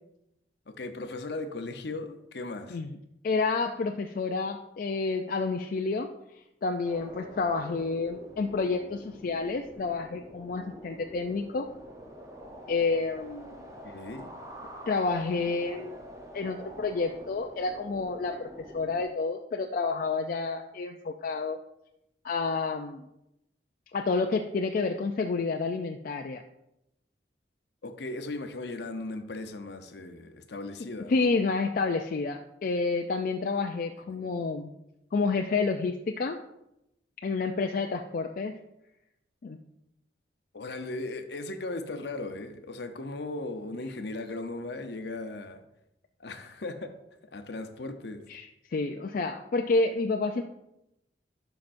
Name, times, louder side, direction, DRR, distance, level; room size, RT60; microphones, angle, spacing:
voice 1, 0.7-2.8 13.8-14.3 15.5-15.6 27.8-31.3 34.1-34.4 40.5-45.6 46.2-47.0 47.3-48.2, left 2 dB, 70° left, 7 dB, 0.7 m, -37 dB
voice 2, 3.2-6.1 6.6-11.7 12.7-13.6 14.9-16.0 16.3-21.6 22.2-23.0 23.9-26.4 31.1-34.7 35.1-36.4 37.2-38.6 39.4-39.6 48.3-50.4, left 4 dB, 50° left, 4 dB, 0.4 m, -29 dB
sound 1, 6.8-19.0, equal, 20° right, 0.8 m, -46 dB
11.5 x 5.8 x 2.6 m, 0.86 s
head